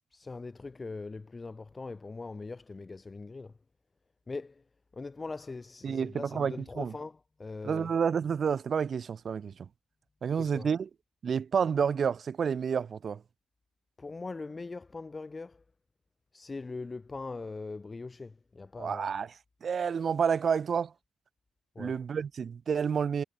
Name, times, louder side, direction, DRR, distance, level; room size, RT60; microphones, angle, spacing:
voice 1, 0.1-3.5 4.3-4.5 4.9-7.1 7.4-7.9 10.5-10.7 14.0-15.6 16.3-19.1 21.7-22.0, left 3 dB, 25° left, 4.8 m, -41 dB
voice 2, 5.8-6.9 7.6-9.6 10.2-10.9 11.2-13.2 18.8-19.3 19.6-20.9 21.8-23.2, right 6 dB, 50° right, 1.7 m, -29 dB
cardioid pair, 90°, 0 cm